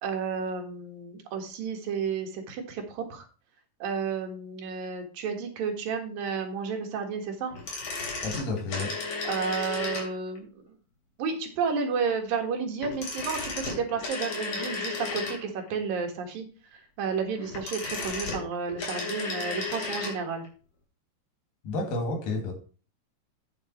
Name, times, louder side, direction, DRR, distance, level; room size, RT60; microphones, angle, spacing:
voice 1, 0.0-3.3 3.8-7.5 9.2-10.6 11.2-16.5 17.0-20.4, right 5 dB, 90° right, 4 dB, 3.6 m, -31 dB
sound 1, 7.5-10.4 12.8-15.7 17.3-20.2 20.5-20.6, left 4 dB, 55° left, 4.3 m, -34 dB
voice 2, 8.2-9.0 21.6-22.5, left 2 dB, 85° left, 4 dB, 4.1 m, -30 dB
9.2 x 7.2 x 4.5 m, 0.36 s
omnidirectional pair, 3.9 m